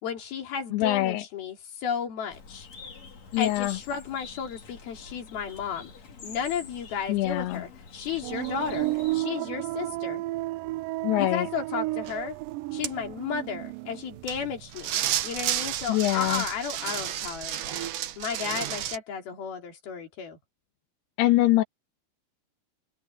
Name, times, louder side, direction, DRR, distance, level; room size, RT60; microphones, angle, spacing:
voice 1, 0.0-2.7 3.4-5.9 6.2-10.2 11.2-12.4 12.7-17.9 18.2-20.4, left 7 dB, 70° left, 5.1 m, -33 dB
voice 2, 0.7-1.2 3.3-3.8 7.1-7.6 11.0-11.5 15.9-16.4 21.2-21.6, left 16 dB, 90° left, 3.1 m, -24 dB
Bird, 2.3-9.2, left 5 dB, 45° left, 4.1 m, -46 dB
sound 1, 8.2-15.1 15.4-16.1, right 19 dB, 80° right, 2.0 m, -33 dB
sound 2, 12.1-12.2 12.8-12.9 14.3-14.4 14.7-19.0, right 12 dB, 65° right, 2.4 m, -31 dB
open air
omnidirectional pair, 4.6 m